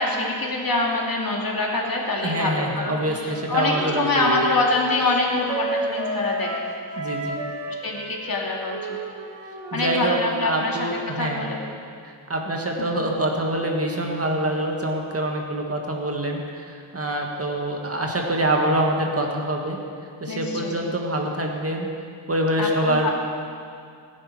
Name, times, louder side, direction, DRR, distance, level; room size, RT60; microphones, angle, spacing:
voice 1, 0.0-6.5 7.7-8.8 9.7-11.6 12.8-12.9 20.3-20.8 22.6-23.1, left 2 dB, 50° left, -1 dB, 2.4 m, -25 dB
voice 2, 2.2-4.3 7.0-7.4 9.7-11.5 12.0-19.8 20.2-21.9 22.3-23.1, right 1 dB, 30° right, 1 dB, 1.9 m, -25 dB
Wind instrument woodwind instrument, 3.3-10.7, right 1 dB, 80° right, 1.9 m, -31 dB
16.0 x 10.5 x 4.5 m, 2.3 s
wide cardioid pair, 85°, 44 cm